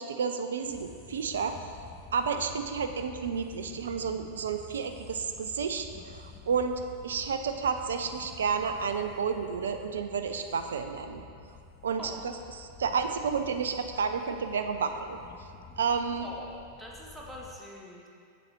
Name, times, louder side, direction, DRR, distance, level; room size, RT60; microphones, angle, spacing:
voice 1, 0.0-1.6 2.1-11.2 11.8-15.2 15.8-16.3, right 6 dB, 65° right, 7 dB, 0.4 m, -31 dB
sound 1, 0.6-17.6, left 5 dB, 25° left, 0.6 m, -50 dB
voice 2, 16.2-18.1, equal, 5° right, -3 dB, 1.1 m, -44 dB
7.7 x 6.8 x 3.1 m, 2.3 s
figure-of-eight pair, 90°, 0 cm